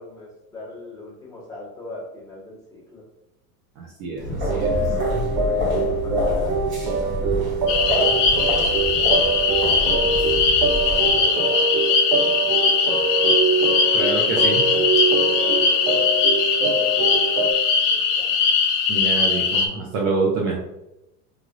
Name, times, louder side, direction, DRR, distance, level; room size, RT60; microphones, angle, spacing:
voice 1, 0.0-3.0 5.4-8.2 8.6-10.3 10.7-13.3 13.8-14.1 14.5-14.6 15.0-16.2 16.6-17.3 17.8-18.4, left 1 dB, 5° left, -8 dB, 1.3 m, -39 dB
voice 2, 3.8-4.7 13.9-14.7 18.9-20.6, right 3 dB, 40° right, -3 dB, 0.6 m, -26 dB
sound 1, 4.2-11.2, equal, 25° right, 1.1 m, -28 dB
sound 2, 4.5-17.5, right 4 dB, 80° right, 0.6 m, -24 dB
sound 3, 7.7-19.7, left 5 dB, 55° left, 0.6 m, -20 dB
3.2 x 2.4 x 2.4 m, 0.90 s
supercardioid pair, 140°, 47 cm